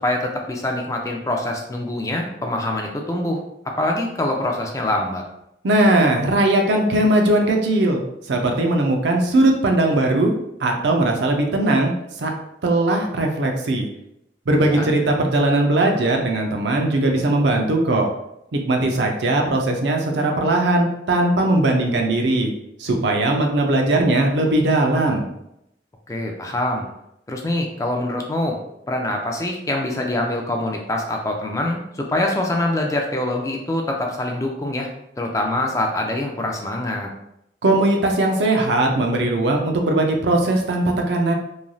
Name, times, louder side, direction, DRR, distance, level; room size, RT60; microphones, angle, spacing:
voice 1, 0.0-3.4 3.8-5.2 14.6-14.9 26.1-26.9 27.3-28.6 28.9-34.9 35.2-37.1, left 1 dB, 15° left, 1 dB, 0.3 m, -24 dB
voice 2, 5.6-8.0 8.3-10.3 10.6-11.9 12.2-12.3 12.6-13.9 14.5-18.1 18.5-22.5 22.8-25.3 37.6-41.3, right 2 dB, 75° right, 2 dB, 0.5 m, -19 dB
3.1 x 2.5 x 2.3 m, 0.81 s
head